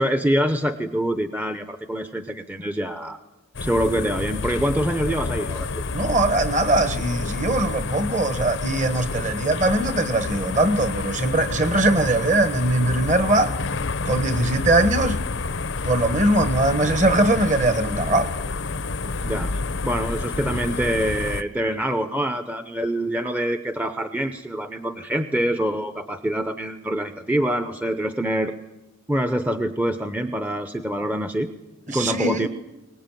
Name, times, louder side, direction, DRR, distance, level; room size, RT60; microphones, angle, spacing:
voice 1, 0.0-3.2 3.6-5.8 19.2-19.5 19.8-28.5 29.1-31.5 31.9-32.5, right 1 dB, 10° right, 0.7 m, -25 dB
sound 1, 3.5-21.4, left 3 dB, 60° left, 0.7 m, -29 dB
voice 2, 5.9-13.6 14.0-15.2 15.8-18.3 31.9-32.5, right 2 dB, 35° right, 1.5 m, -21 dB
23.0 x 20.0 x 9.1 m
head